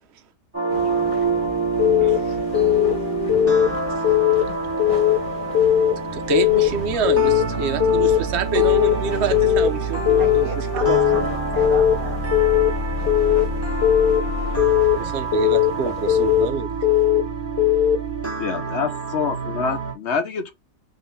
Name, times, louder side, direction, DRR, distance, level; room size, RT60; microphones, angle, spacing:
sound 1, 0.5-19.9, right 3 dB, 10° right, 1.6 m, -27 dB
sound 2, 0.7-16.5, equal, 25° left, 1.4 m, -38 dB
voice 1, 0.7-1.2 10.2-10.9 11.1-11.2 11.5-12.7, right 7 dB, 80° right, 1.4 m, -36 dB
Keyboard (musical) / Alarm, 1.8-2.2 2.5-2.9 3.3-3.7 4.0-4.4 4.8-5.2 5.6-5.9 6.3-6.7 7.1-7.4 7.8-8.2 8.6-8.9 9.3-9.7 10.1-10.4 10.8-11.2 11.6-11.9 12.3-12.7 13.1-13.5 13.8-14.2 14.6-15.0 15.3-15.7 16.1-16.5 16.8-17.2 17.6-18.0, left 13 dB, 80° left, 1.4 m, -18 dB
voice 2, 2.0-2.9 3.9-4.1 6.1-11.3 14.9-16.8, right 5 dB, 50° right, 0.9 m, -27 dB
voice 3, 18.4-20.5, left 5 dB, 55° left, 0.9 m, -26 dB
4.0 x 2.8 x 3.6 m
omnidirectional pair, 1.8 m